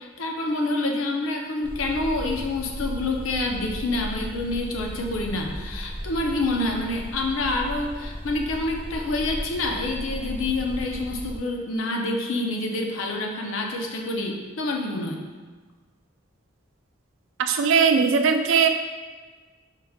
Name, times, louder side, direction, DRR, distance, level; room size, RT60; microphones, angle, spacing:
voice 1, 0.0-15.2, left 2 dB, 85° left, 2 dB, 0.6 m, -27 dB
sound 1, 1.6-11.4, equal, 10° left, 0.4 m, -36 dB
voice 2, 17.4-18.7, right 6 dB, 70° right, 7 dB, 0.3 m, -19 dB
4.7 x 2.3 x 3.5 m, 1.3 s
head